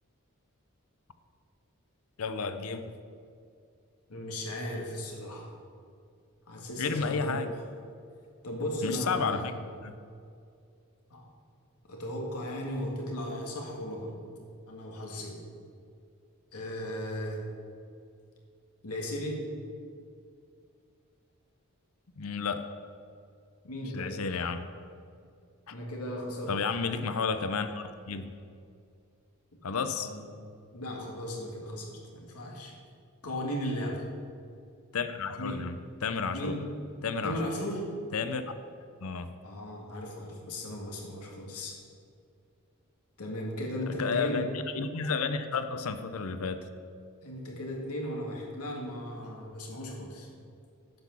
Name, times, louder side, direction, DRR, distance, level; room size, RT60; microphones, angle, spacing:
voice 1, 2.2-2.9 6.8-7.5 8.8-9.5 9.8-9.9 22.2-22.7 23.9-24.6 25.7-25.8 26.5-28.3 29.6-30.1 34.9-36.5 37.0-37.4 38.1-38.4 39.0-39.3 44.0-44.5 44.7-46.6, left 5 dB, 70° left, 10 dB, 0.6 m, -31 dB
voice 2, 4.1-5.5 6.5-7.4 8.4-9.5 11.1-11.3 11.9-14.2 14.7-15.4 16.5-17.4 18.8-19.4 23.6-24.1 25.7-26.5 26.9-27.0 30.0-30.3 30.7-32.7 33.2-34.0 35.4-35.6 36.3-36.6 37.2-37.9 39.4-41.7 43.2-44.5 47.2-50.3, equal, 85° left, -1 dB, 2.0 m, -36 dB
10.5 x 6.1 x 7.1 m, 2.4 s
head